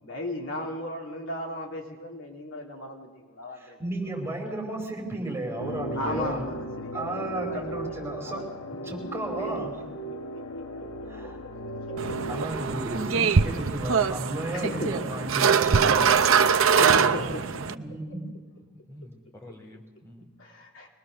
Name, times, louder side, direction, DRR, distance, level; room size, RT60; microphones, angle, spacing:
voice 1, 0.0-3.8 4.1-4.2 5.9-8.6 9.4-9.6 10.3-10.6 14.5-14.9 16.6-17.4 17.7-17.8 20.4-20.9, left 1 dB, 65° left, 0 dB, 3.1 m, -36 dB
voice 2, 3.5-6.4 6.9-8.4 8.8-9.7 11.1-11.4 12.3-16.2 17.8-18.2, right 1 dB, 10° right, -1 dB, 4.8 m, -33 dB
sound 1, 5.6-12.5, right 1 dB, 80° left, 1.2 m, -36 dB
sound 2, 12.0-17.7, right 6 dB, 70° right, 0.7 m, -23 dB
voice 3, 16.8-18.0 18.9-20.3, equal, 15° left, -1 dB, 3.5 m, -42 dB
23.5 x 20.0 x 6.6 m, 1.3 s
head